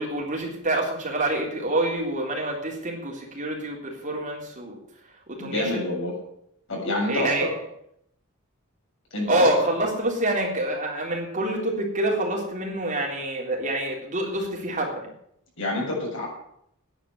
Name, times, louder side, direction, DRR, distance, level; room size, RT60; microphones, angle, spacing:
voice 1, 0.0-4.8 5.3-5.9 7.1-7.5 9.3-15.1, right 1 dB, 35° right, -1 dB, 3.7 m, -26 dB
voice 2, 5.4-6.2 6.7-7.5 9.1-9.5 15.6-16.3, left 1 dB, 65° left, -2 dB, 7.2 m, -27 dB
10.5 x 9.4 x 9.6 m, 0.73 s
head